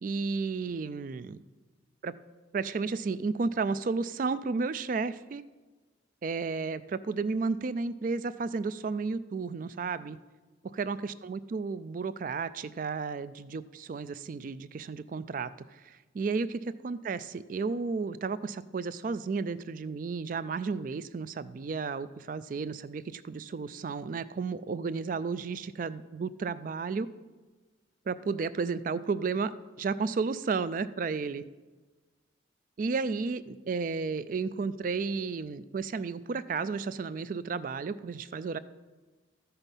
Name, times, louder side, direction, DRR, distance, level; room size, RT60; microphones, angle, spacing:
voice 1, 0.0-1.4 2.0-2.1 2.5-5.4 6.2-10.2 10.8-27.1 28.1-29.5 29.8-31.4 32.8-38.6, right 4 dB, 45° right, 15 dB, 0.3 m, -33 dB
13.0 x 5.7 x 5.3 m, 1.3 s
head